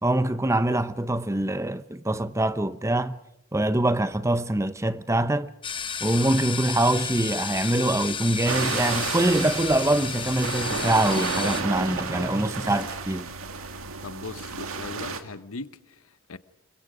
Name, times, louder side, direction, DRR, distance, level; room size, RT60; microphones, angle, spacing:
voice 1, 0.0-3.2 3.5-5.5 6.0-13.3, right 1 dB, 15° right, 0.8 m, -24 dB
sound 1, 5.6-11.6, left 7 dB, 25° left, 0.9 m, -33 dB
sound 2, 8.5-15.2, right 4 dB, 75° right, 2.2 m, -31 dB
voice 2, 14.0-16.4, left 3 dB, 85° left, 1.0 m, -39 dB
28.0 x 23.0 x 5.1 m
head